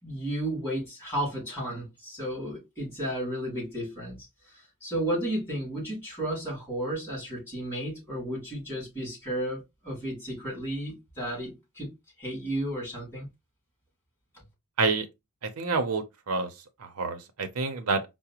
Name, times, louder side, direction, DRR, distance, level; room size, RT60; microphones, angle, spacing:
voice 1, 0.0-4.2 4.4-13.3, right 1 dB, 10° left, 2.4 m, -33 dB
voice 2, 15.4-16.5 16.8-18.0, right 4 dB, 75° right, 0.6 m, -28 dB
4.8 x 2.0 x 2.8 m
head